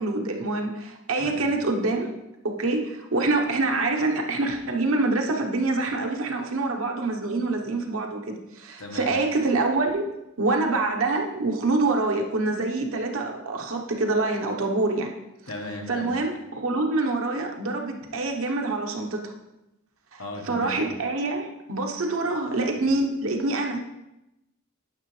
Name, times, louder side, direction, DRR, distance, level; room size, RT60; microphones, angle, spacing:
voice 1, 0.0-2.2 2.4-15.1 15.9-19.3 20.1-23.8, right 2 dB, 70° right, 2 dB, 1.0 m, -26 dB
voice 2, 15.5-16.1 20.2-20.8, left 2 dB, 80° left, 2 dB, 1.3 m, -36 dB
9.5 x 6.1 x 3.2 m, 0.92 s
head